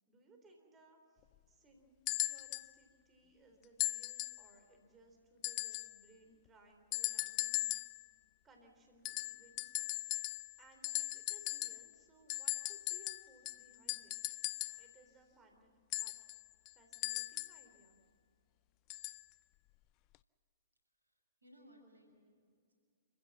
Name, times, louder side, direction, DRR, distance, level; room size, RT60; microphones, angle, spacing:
voice 1, 0.1-8.1 8.4-10.1 10.6-14.2 14.8-15.7 16.0-16.2 16.7-18.0, right 2 dB, 20° right, 3 dB, 3.9 m, -64 dB
sound 1, 2.1-2.7 3.8-4.5 5.4-6.0 6.9-8.0 9.0-10.6 10.8-11.9 12.3-14.9 15.9-17.6 18.9-19.2 20.1-20.2, left 19 dB, 35° left, 0.5 m, -39 dB
voice 2, 21.0-22.7, equal, 85° right, 2 dB, 6.2 m, -63 dB
28.0 x 15.5 x 7.6 m, 2.2 s
figure-of-eight pair, 115°, 0 cm